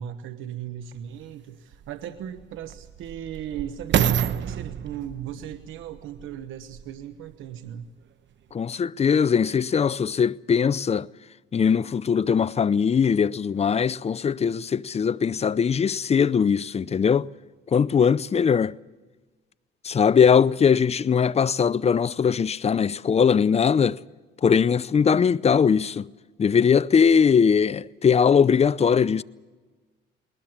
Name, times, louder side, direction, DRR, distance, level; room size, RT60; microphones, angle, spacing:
voice 1, 0.0-7.9, right 10 dB, 85° right, 1.1 m, -37 dB
sound 1, 0.9-1.0 1.7-7.0 7.7-7.8, right 9 dB, 70° right, 1.0 m, -29 dB
voice 2, 8.5-11.1 11.5-17.3 17.7-18.7 19.8-24.0 24.4-26.1 26.4-29.2, left 6 dB, 30° left, 0.6 m, -20 dB
21.0 x 20.0 x 7.3 m
cardioid pair, 90°, 20 cm